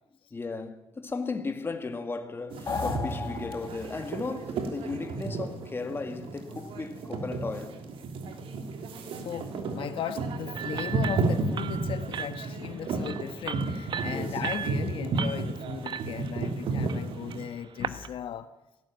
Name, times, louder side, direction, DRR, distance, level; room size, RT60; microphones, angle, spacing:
voice 1, 0.3-7.8 14.0-14.4, left 3 dB, 25° left, 2.1 m, -36 dB
sound 1, 2.5-17.4, right 3 dB, 80° right, 3.2 m, -33 dB
sound 2, 2.7-4.2, left 5 dB, 40° left, 2.2 m, -34 dB
voice 2, 9.2-18.5, left 9 dB, 70° left, 1.3 m, -37 dB
sound 3, 10.6-18.1, right 8 dB, 60° right, 1.2 m, -38 dB
18.0 x 16.5 x 9.1 m
cardioid pair, 120°, 9 cm